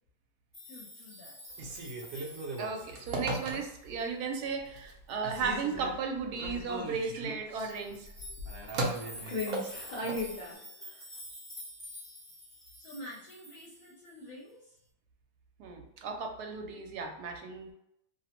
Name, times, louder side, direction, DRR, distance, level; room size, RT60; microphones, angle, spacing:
sound 1, 0.5-4.0 4.7-4.8 5.1-5.2 7.6-14.2, left 1 dB, ahead, 0.6 m, -49 dB
voice 1, 0.7-1.4 12.8-14.8, equal, 75° left, -3 dB, 1.0 m, -48 dB
Telephone, 1.5-4.0 4.5-5.0 5.2-10.3, right 2 dB, 70° right, 0.8 m, -38 dB
voice 2, 2.6-8.1 15.6-17.7, right 5 dB, 85° right, 3 dB, 1.1 m, -35 dB
voice 3, 8.7-11.0, left 2 dB, 50° left, -7 dB, 0.5 m, -38 dB
2.7 x 2.0 x 2.8 m, 0.77 s
omnidirectional pair, 1.6 m